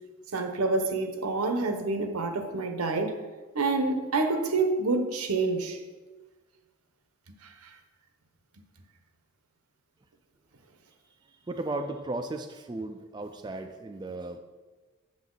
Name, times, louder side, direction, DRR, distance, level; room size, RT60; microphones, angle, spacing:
voice 1, 0.3-3.2 3.5-5.8 7.4-7.7, right 3 dB, 85° right, 0.9 m, -27 dB
voice 2, 11.5-14.4, right 2 dB, 20° right, 0.3 m, -35 dB
7.5 x 7.2 x 3.9 m
head